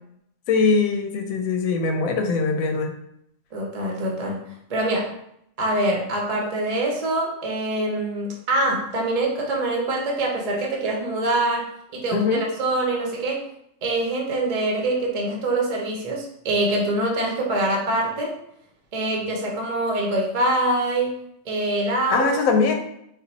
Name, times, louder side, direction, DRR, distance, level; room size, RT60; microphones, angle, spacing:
voice 1, 0.5-2.9 12.1-12.4 22.1-22.7, left 4 dB, 85° left, 4 dB, 1.1 m, -21 dB
voice 2, 3.5-5.1 5.6-11.7 11.9-13.4 13.8-18.3 18.9-21.1 21.4-22.3, right 1 dB, 35° right, -1 dB, 0.8 m, -24 dB
4.4 x 2.3 x 4.0 m, 0.75 s
omnidirectional pair, 1.4 m